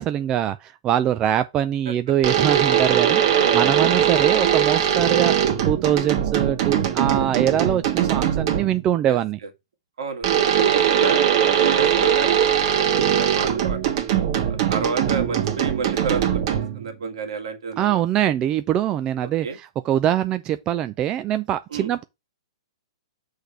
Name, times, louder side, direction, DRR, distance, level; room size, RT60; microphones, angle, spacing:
voice 1, 0.0-5.3 5.6-9.4 17.8-22.0, right 11 dB, 25° right, 0.4 m, -23 dB
sound 1, 2.2-8.8 10.2-16.9, right 9 dB, 50° right, 1.4 m, -20 dB
voice 2, 3.3-3.7 9.0-9.2 10.0-11.3 11.6-12.6 12.9-13.9 14.7-18.0 19.2-19.6 21.7-21.9, right 4 dB, 70° right, 1.9 m, -30 dB
6.3 x 3.4 x 5.7 m
hypercardioid pair, 120°, 3 cm